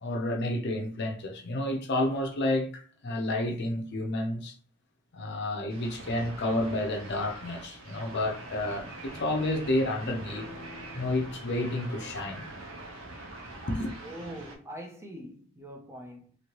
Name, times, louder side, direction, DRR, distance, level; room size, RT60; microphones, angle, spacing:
voice 1, 0.0-4.5 5.1-10.5 10.9-12.4 13.7-13.9, left 1 dB, 50° left, 0.6 m, -30 dB
sound 1, 5.7-14.6, right 2 dB, 65° right, 0.8 m, -44 dB
sound 2, 8.5-13.0, left 2 dB, 35° right, 1.2 m, -52 dB
voice 2, 14.0-16.4, equal, 10° right, 0.4 m, -43 dB
3.0 x 2.8 x 2.9 m
head